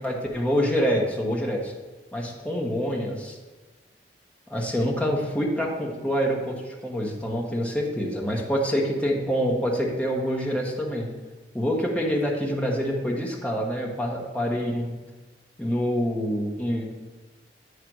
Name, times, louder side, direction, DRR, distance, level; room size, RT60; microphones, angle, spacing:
voice 1, 0.0-1.7 2.1-3.4 4.5-6.6 6.8-11.1 11.5-15.0 15.6-16.9, equal, 5° left, -1 dB, 1.0 m, -26 dB
9.0 x 3.3 x 6.1 m, 1.3 s
head